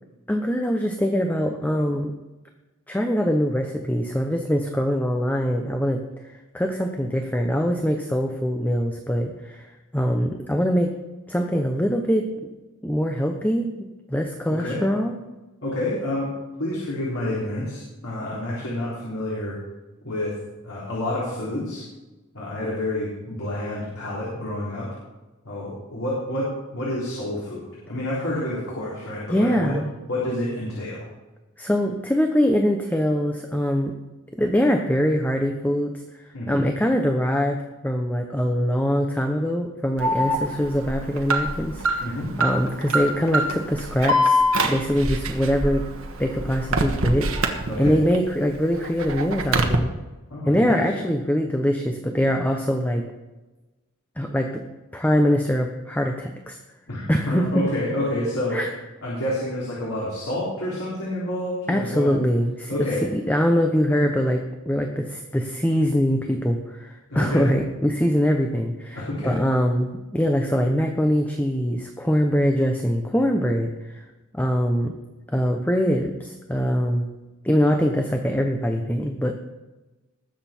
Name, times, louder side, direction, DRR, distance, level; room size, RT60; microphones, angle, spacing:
voice 1, 0.3-2.1 2.9-6.0 6.5-9.7 9.9-10.9 11.3-12.5 12.8-15.2 29.3-29.9 31.6-33.9 34.4-37.6 37.8-42.1 42.4-45.9 46.2-47.3 47.8-49.9 50.4-53.0 54.2-54.6 54.9-56.6 57.1-57.7 58.5-58.7 61.7-73.9 74.3-74.9 75.3-77.1 77.4-79.3, equal, 10° left, 3 dB, 0.9 m, -23 dB
voice 2, 14.5-14.8 15.6-16.3 16.6-19.6 20.0-20.3 20.6-21.8 22.3-24.9 25.4-29.7 30.1-31.0 36.3-36.6 42.0-42.3 47.7-48.0 50.3-50.7 56.9-58.6 59.0-62.2 62.7-63.0 67.1-67.5 69.0-69.4, left 1 dB, 85° left, -6 dB, 3.8 m, -28 dB
Alarm, 40.0-48.2 48.5-49.8, equal, 75° right, 1.4 m, -24 dB
20.0 x 7.7 x 4.5 m, 1.1 s
head